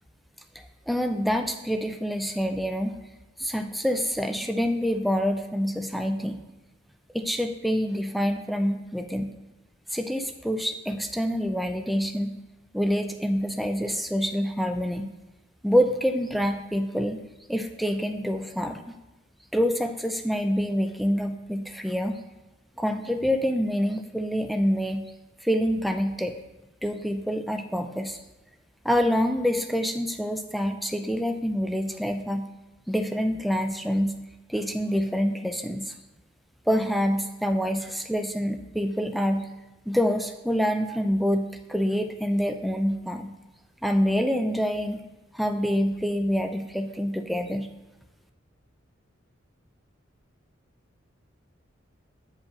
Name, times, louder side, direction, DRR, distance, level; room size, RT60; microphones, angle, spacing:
voice 1, 0.9-3.0 3.4-6.4 7.1-9.3 9.9-12.4 12.7-15.1 15.6-17.2 17.5-18.9 19.5-22.2 22.8-25.0 25.4-26.4 26.8-28.2 28.8-32.5 32.9-34.1 34.5-35.9 36.7-39.5 39.9-43.3 43.8-45.0 45.3-47.7, equal, ahead, 6 dB, 0.3 m, -26 dB
8.3 x 5.1 x 2.4 m, 1.1 s
head